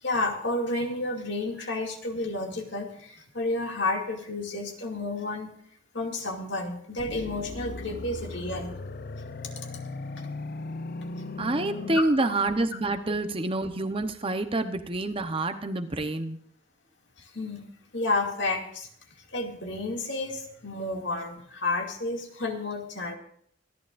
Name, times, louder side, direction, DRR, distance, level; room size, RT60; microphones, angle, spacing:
voice 1, 0.0-5.5 5.9-8.7 11.9-12.0 17.2-17.7 17.9-18.9 19.3-23.1, left 2 dB, 65° left, 2 dB, 2.4 m, -31 dB
sound 1, 7.0-12.0, left 3 dB, 50° left, 0.6 m, -37 dB
voice 2, 11.4-16.4, right 2 dB, 30° right, 7 dB, 0.9 m, -27 dB
25.5 x 11.0 x 2.6 m, 0.66 s
head